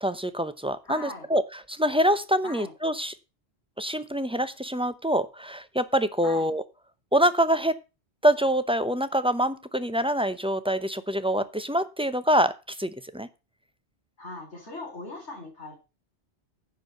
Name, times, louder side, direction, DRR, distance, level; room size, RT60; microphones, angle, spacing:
voice 1, 0.0-3.1 3.8-6.6 7.1-7.8 8.2-13.3, equal, 5° right, 12 dB, 0.5 m, -25 dB
voice 2, 0.8-1.3 2.4-2.7 6.2-6.5 14.2-15.8, left 2 dB, 85° left, -4 dB, 4.1 m, -39 dB
10.5 x 4.6 x 7.9 m, 0.29 s
omnidirectional pair, 1.1 m